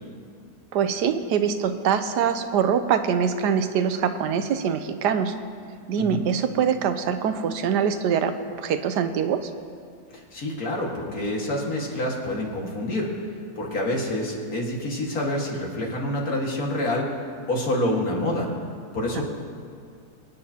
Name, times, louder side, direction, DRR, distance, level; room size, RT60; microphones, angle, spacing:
voice 1, 0.7-5.3 5.9-9.5 19.1-19.2, right 7 dB, 85° right, 9 dB, 1.3 m, -24 dB
voice 2, 10.1-13.1 13.6-17.1 17.5-18.5 18.9-19.2, left 1 dB, 60° left, -1 dB, 2.3 m, -27 dB
25.0 x 9.2 x 2.8 m, 2.3 s
omnidirectional pair, 1.7 m